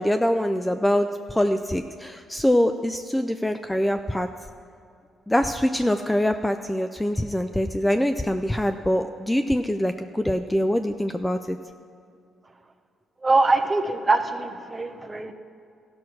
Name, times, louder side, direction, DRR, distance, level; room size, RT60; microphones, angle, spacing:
voice 1, 0.0-4.3 5.3-11.6, equal, 5° left, 8 dB, 0.4 m, -24 dB
voice 2, 13.2-15.3, right 3 dB, 20° right, 7 dB, 0.8 m, -23 dB
15.0 x 6.2 x 6.0 m, 2.5 s
cardioid pair, 90°, 0 cm